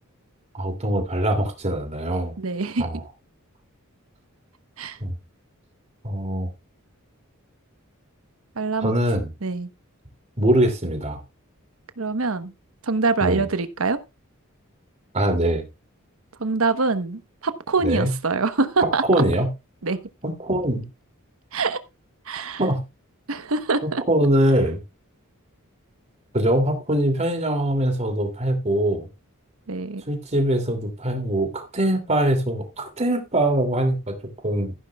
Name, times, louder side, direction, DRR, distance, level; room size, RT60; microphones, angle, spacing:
voice 1, 0.5-2.3 2.8-3.0 5.0-5.1 6.0-6.5 8.8-9.3 10.4-11.2 13.2-13.4 15.1-15.6 17.8-18.1 18.8-19.5 20.2-20.9 22.6-22.8 23.8-24.8 26.3-29.1 30.1-34.1 34.4-34.7, right 1 dB, 30° right, 2.8 m, -22 dB
voice 2, 2.4-2.9 4.8-5.0 8.6-8.9 9.4-9.7 12.0-12.5 12.8-14.0 16.4-19.0 19.8-20.0 21.5-21.8 22.3-22.6 23.3-24.0 29.7-30.0, right 3 dB, 70° right, 1.1 m, -24 dB
15.0 x 9.6 x 2.4 m
head